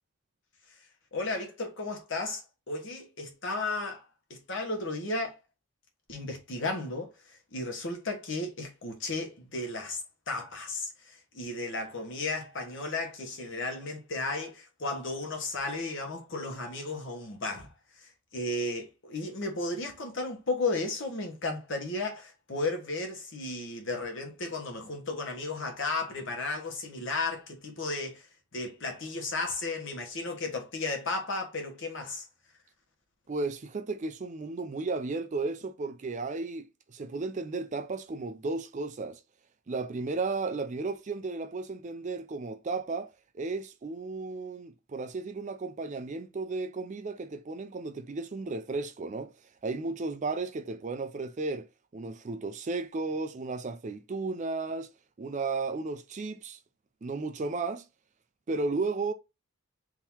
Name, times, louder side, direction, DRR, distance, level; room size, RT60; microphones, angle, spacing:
voice 1, 1.1-4.0 4.3-5.4 6.1-17.7 17.9-32.3, left 2 dB, 55° left, 1.2 m, -34 dB
voice 2, 33.3-39.2 39.7-49.3 49.6-54.9 55.2-56.6 57.0-57.8 58.5-59.1, right 3 dB, 35° right, 0.4 m, -34 dB
3.7 x 2.9 x 4.3 m
head